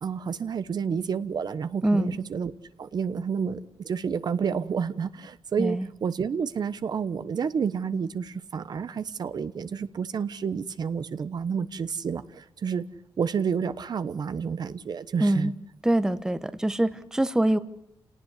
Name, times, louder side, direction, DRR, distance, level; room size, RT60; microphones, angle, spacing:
voice 1, 0.0-2.5 2.8-12.8 13.2-15.5, right 6 dB, 50° right, 14 dB, 1.1 m, -30 dB
voice 2, 1.8-2.2 5.6-5.9 15.2-15.5 15.8-17.6, right 1 dB, 5° right, 13 dB, 0.9 m, -24 dB
29.5 x 18.5 x 8.3 m, 0.77 s
wide cardioid pair, 150°, 9 cm